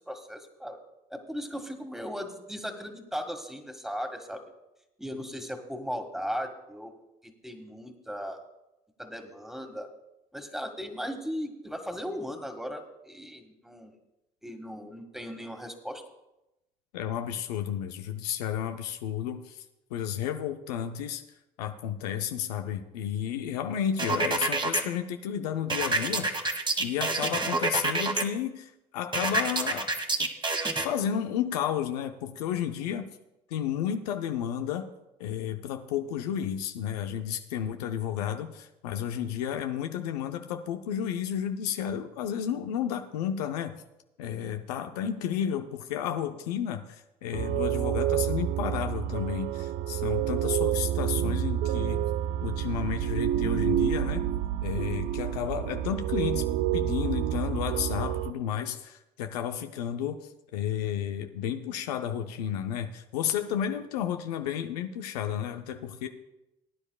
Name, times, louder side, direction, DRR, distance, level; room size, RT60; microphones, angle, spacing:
voice 1, 0.1-0.8 1.1-4.4 5.0-6.9 7.2-8.4 9.0-9.9 10.3-13.9 14.4-16.0, equal, ahead, 6 dB, 1.8 m, -37 dB
voice 2, 16.9-19.6 19.9-21.2 21.6-26.3 26.8-29.9 30.2-30.3 30.8-33.1 33.5-34.9 35.2-43.8 44.2-52.1 52.4-54.3 54.6-66.1, left 9 dB, 90° left, 6 dB, 0.6 m, -32 dB
sound 1, 24.0-24.8 25.7-28.2 29.1-30.9, right 2 dB, 25° right, 1.6 m, -27 dB
sound 2, 47.3-58.3, right 11 dB, 75° right, 0.5 m, -28 dB
20.0 x 9.9 x 2.3 m, 0.92 s
hypercardioid pair, 55°, 20 cm